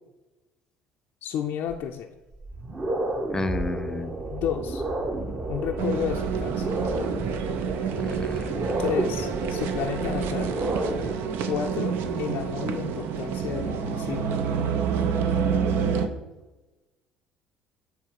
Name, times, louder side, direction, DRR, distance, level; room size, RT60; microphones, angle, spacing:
voice 1, 1.2-2.1 4.3-4.8 5.5-6.7 8.8-10.5 11.4-14.4, left 9 dB, 60° left, 3 dB, 0.4 m, -31 dB
sound 1, 1.7-1.8 2.3-11.1, right 2 dB, 30° right, 1.0 m, -31 dB
voice 2, 3.3-4.1 7.9-8.7 12.0-12.2, left 2 dB, 15° left, 10 dB, 0.7 m, -31 dB
sound 2, 5.8-16.1, right 7 dB, 65° right, 0.6 m, -28 dB
7.2 x 3.5 x 4.7 m, 1.1 s
hypercardioid pair, 60°, 4 cm